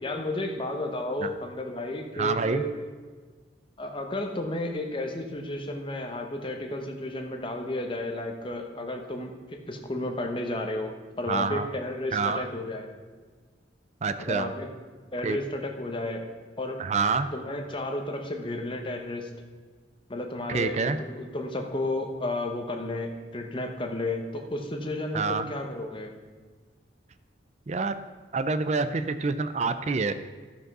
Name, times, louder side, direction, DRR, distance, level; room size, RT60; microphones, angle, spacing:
voice 1, 0.0-2.8 3.8-12.9 14.2-14.7 15.1-16.3 16.6-16.8 17.3-19.3 20.1-26.1, left 1 dB, 25° left, 3 dB, 1.0 m, -32 dB
voice 2, 2.1-2.6 11.3-11.7 12.1-12.4 14.0-14.5 15.2-15.4 16.8-17.3 20.5-21.0 25.1-25.5 27.7-28.0 28.3-30.2, right 4 dB, 35° right, 11 dB, 0.4 m, -27 dB
13.5 x 5.2 x 6.1 m, 1.5 s
head